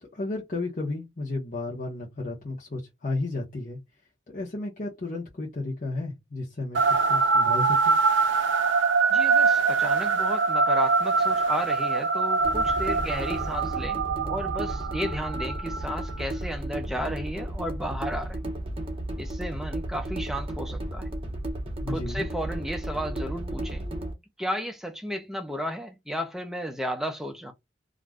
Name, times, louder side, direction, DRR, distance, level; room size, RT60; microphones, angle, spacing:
voice 1, 0.0-3.8 4.3-8.0 21.8-22.3, left 2 dB, 45° left, 0.8 m, -33 dB
sound 1, 6.7-16.2, right 4 dB, 75° right, 0.4 m, -24 dB
voice 2, 9.1-18.5 19.2-21.2 21.9-23.8 24.4-27.5, equal, ahead, 0.4 m, -33 dB
sound 2, 12.4-24.1, right 1 dB, 30° right, 0.7 m, -33 dB
2.4 x 2.1 x 3.4 m
head